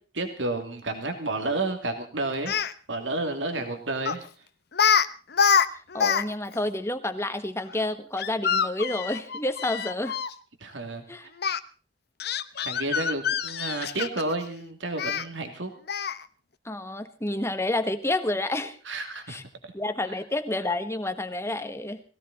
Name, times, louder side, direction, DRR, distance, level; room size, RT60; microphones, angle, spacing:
voice 1, 0.1-2.6 2.9-4.3 10.6-11.3 12.6-15.7 18.9-19.4 19.6-19.7 20.1-20.2, right 2 dB, 85° right, 6 dB, 2.8 m, -31 dB
Speech, 2.3-2.7 4.0-4.3 4.7-5.1 5.3-6.2 6.5-6.6 8.2-10.3 11.4-11.6 12.2-14.3 15.0-15.2 15.9-16.2, left 7 dB, 60° left, 0.9 m, -25 dB
voice 2, 5.9-10.2 11.1-11.3 16.6-18.8 19.3-19.4 19.7-22.0, left 2 dB, 15° left, 9 dB, 1.4 m, -29 dB
20.0 x 17.0 x 4.2 m, 0.38 s
head